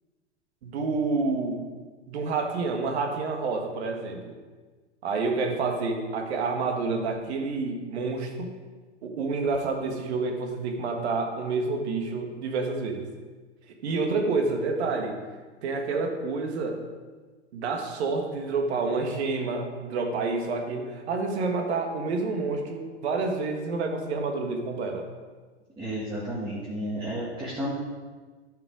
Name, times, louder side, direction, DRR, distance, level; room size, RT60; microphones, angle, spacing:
voice 1, 0.6-1.6 2.1-4.3 5.0-8.5 9.0-13.0 13.8-15.1 15.6-16.8 17.5-25.1, right 3 dB, 65° right, 3 dB, 1.8 m, -28 dB
voice 2, 25.8-27.7, equal, 15° right, -8 dB, 2.4 m, -32 dB
11.0 x 5.8 x 4.8 m, 1.4 s
hypercardioid pair, 115°, 35 cm